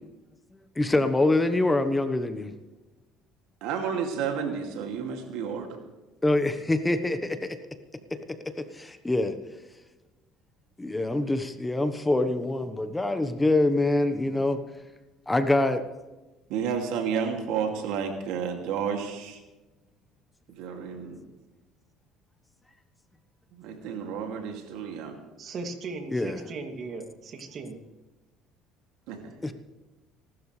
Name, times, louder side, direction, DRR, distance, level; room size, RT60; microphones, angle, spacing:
voice 1, 0.8-2.5 6.2-7.6 8.1-9.4 10.8-14.6 15.3-15.8 26.1-26.4 29.4-29.5, left 2 dB, 15° left, 9 dB, 1.2 m, -25 dB
voice 2, 3.6-5.8 16.5-19.4 20.5-21.2 23.6-25.2 29.1-29.2, right 7 dB, 75° right, 3 dB, 2.6 m, -31 dB
voice 3, 25.4-27.8, right 3 dB, 50° right, 4 dB, 2.7 m, -37 dB
26.0 x 12.5 x 3.4 m, 1.1 s
supercardioid pair, 90°, 0 cm